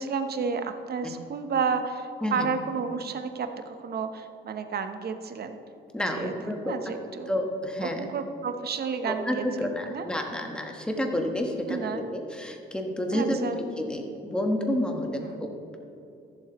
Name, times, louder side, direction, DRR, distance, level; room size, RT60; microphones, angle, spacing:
voice 1, 0.0-5.6 6.1-6.3 6.6-7.3 7.8-10.1 11.7-12.1 13.1-13.6 15.1-15.4, right 5 dB, 55° right, 8 dB, 0.8 m, -31 dB
voice 2, 5.9-6.8 7.3-8.1 9.0-13.5 13.8-15.6, left 1 dB, 5° left, 2 dB, 1.2 m, -30 dB
15.0 x 7.2 x 3.0 m, 2.8 s
cardioid pair, 90°, 20 cm